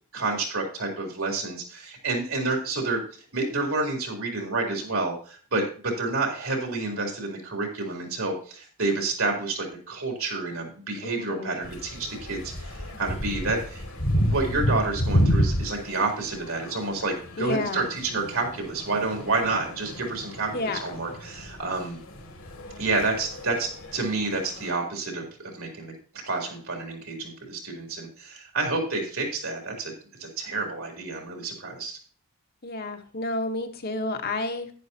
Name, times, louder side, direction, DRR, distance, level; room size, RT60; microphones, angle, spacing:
voice 1, 0.1-13.8 14.1-22.0 22.8-25.9 26.2-29.9 30.2-32.0, right 3 dB, 70° right, 1 dB, 3.3 m, -29 dB
voice 2, 11.0-11.6 17.4-17.9 20.5-20.8 32.6-34.7, left 2 dB, 45° left, 5 dB, 1.0 m, -30 dB
sound 1, 11.6-24.7, equal, 85° left, 3.0 m, -31 dB
11.0 x 9.9 x 2.8 m, 0.40 s
head